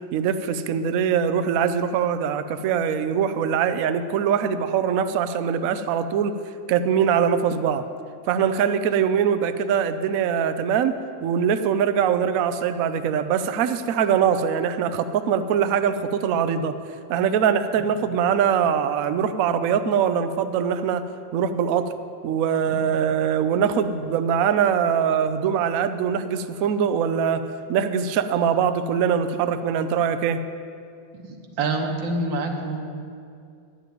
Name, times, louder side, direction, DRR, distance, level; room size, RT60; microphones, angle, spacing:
voice 1, 0.1-6.3 6.7-7.8 8.3-11.0 11.2-16.7 17.1-21.0 21.3-21.8 22.2-27.4 27.7-30.4, right 7 dB, 90° right, 10 dB, 0.7 m, -22 dB
voice 2, 31.2-32.8, right 2 dB, 70° right, 4 dB, 1.8 m, -27 dB
10.5 x 7.0 x 9.2 m, 2.4 s
omnidirectional pair, 2.2 m